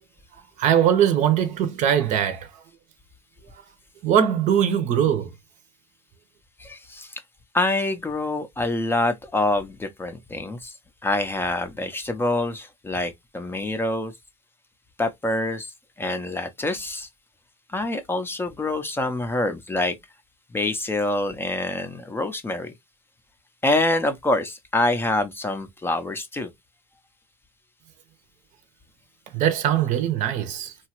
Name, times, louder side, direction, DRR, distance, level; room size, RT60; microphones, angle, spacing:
voice 1, 0.6-2.5 4.0-5.3 29.3-30.7, right 9 dB, 50° right, 0.7 m, -21 dB
voice 2, 6.6-7.2 7.5-10.7 11.0-14.1 15.0-15.7 16.0-17.1 17.7-20.0 20.5-22.7 23.6-26.5, left 2 dB, 15° left, 0.5 m, -26 dB
2.9 x 2.3 x 2.9 m
supercardioid pair, 100°, 17 cm